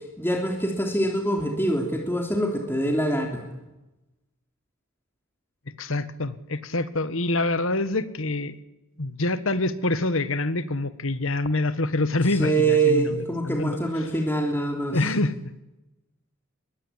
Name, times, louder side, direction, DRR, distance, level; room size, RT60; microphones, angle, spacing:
voice 1, 0.2-3.4 12.3-15.0, right 2 dB, 10° left, 1 dB, 3.3 m, -24 dB
voice 2, 5.8-8.5 9.0-13.8 14.9-15.3, left 2 dB, 65° left, 14 dB, 1.6 m, -26 dB
25.5 x 22.0 x 9.9 m, 0.98 s
head